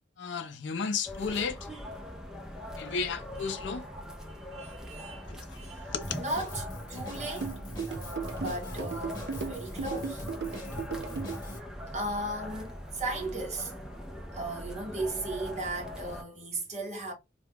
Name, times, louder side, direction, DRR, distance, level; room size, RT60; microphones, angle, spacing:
voice 1, 0.2-1.6 2.8-3.9 5.3-6.2, left 5 dB, 80° left, 0.4 m, -34 dB
sound 1, 1.0-16.2, left 1 dB, 5° right, 0.3 m, -41 dB
voice 2, 4.3-5.3 5.6-7.6 8.4-10.2 11.9-13.7 14.3-17.1, right 2 dB, 40° right, 0.9 m, -36 dB
Drum kit, 6.0-11.6, equal, 20° left, 0.8 m, -42 dB
sound 2, 7.4-11.4, right 5 dB, 65° right, 0.4 m, -36 dB
2.2 x 2.0 x 3.3 m
head